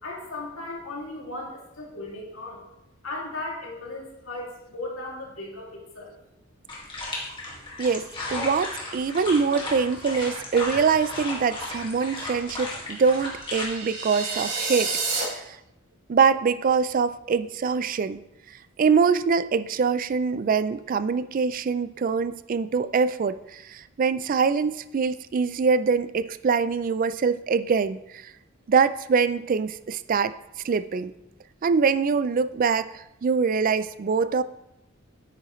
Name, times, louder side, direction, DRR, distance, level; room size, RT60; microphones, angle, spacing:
voice 1, 0.0-2.6 3.0-6.1, left 2 dB, 75° left, -2 dB, 2.4 m, -36 dB
sound 1, 6.7-13.7, left 2 dB, 25° left, 1.8 m, -35 dB
voice 2, 7.8-15.6 16.1-18.2 18.5-28.3 28.7-30.3 30.6-31.1 31.6-34.4, right 5 dB, 40° right, 14 dB, 0.3 m, -24 dB
sound 2, 13.2-15.2, right 4 dB, 65° right, 3.7 m, -30 dB
9.2 x 8.8 x 3.1 m, 0.89 s
head